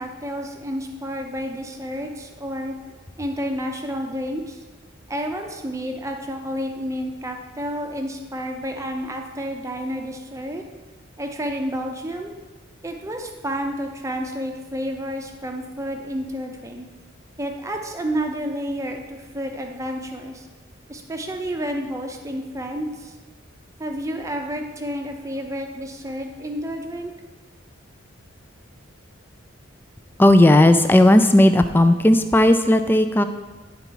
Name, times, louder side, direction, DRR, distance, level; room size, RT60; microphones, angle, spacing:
voice 1, 0.0-2.7 3.2-4.6 5.1-10.6 11.2-12.3 12.8-16.9 17.4-20.5 20.9-23.1 23.8-27.1, equal, 15° right, 3 dB, 0.7 m, -30 dB
voice 2, 30.2-33.3, left 1 dB, 10° left, 9 dB, 0.3 m, -14 dB
10.5 x 3.9 x 4.6 m, 1.3 s
head